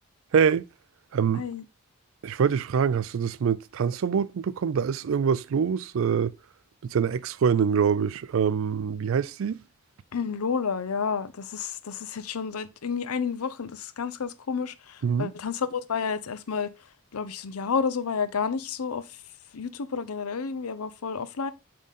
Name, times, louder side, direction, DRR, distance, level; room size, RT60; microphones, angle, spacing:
voice 1, 0.3-0.6 1.1-1.4 2.2-6.3 6.8-9.6 15.0-15.3, right 7 dB, 65° right, 0.3 m, -25 dB
voice 2, 1.3-1.6 10.1-16.7 17.1-19.2 19.5-21.5, left 6 dB, 85° left, 0.6 m, -30 dB
7.3 x 3.8 x 4.1 m
head